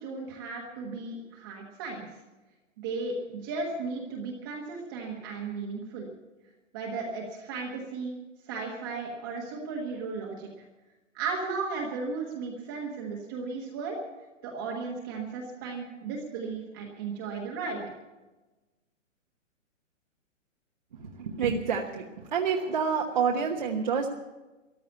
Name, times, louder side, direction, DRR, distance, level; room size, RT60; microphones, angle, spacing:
voice 1, 0.0-2.1 2.8-6.1 6.7-8.2 8.4-10.5 11.1-14.0 14.4-17.8, right 4 dB, 15° right, -2 dB, 1.3 m, -35 dB
voice 2, 21.0-24.1, right 6 dB, 35° right, 0 dB, 1.2 m, -28 dB
14.5 x 11.5 x 8.2 m, 1.1 s
hypercardioid pair, 175°, 39 cm